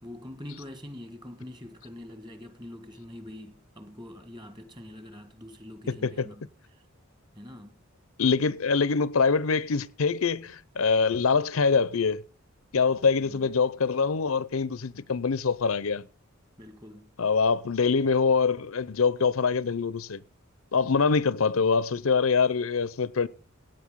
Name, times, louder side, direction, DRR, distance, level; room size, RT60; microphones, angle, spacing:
voice 1, 0.0-6.9 7.3-7.8 13.2-13.5 16.6-17.1, left 1 dB, 20° right, 1.5 m, -44 dB
voice 2, 5.9-6.3 8.2-12.2 12.7-16.0 17.2-20.2 20.7-23.3, left 5 dB, 90° left, 0.6 m, -24 dB
17.0 x 9.1 x 3.7 m
head